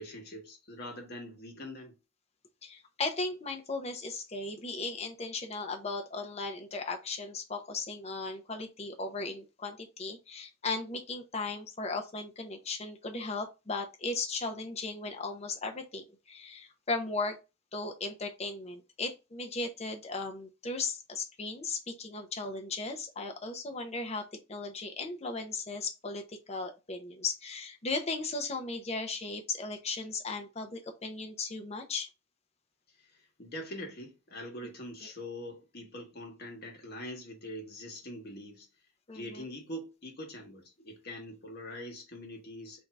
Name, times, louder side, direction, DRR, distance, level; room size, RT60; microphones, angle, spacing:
voice 1, 0.0-1.9 33.4-38.7 39.1-42.8, left 1 dB, 55° left, 1.4 m, -43 dB
voice 2, 2.6-17.4 17.7-32.1 34.6-34.7 35.0-35.1 39.1-39.5, left 3 dB, 35° left, 0.8 m, -37 dB
3.6 x 2.7 x 4.6 m
head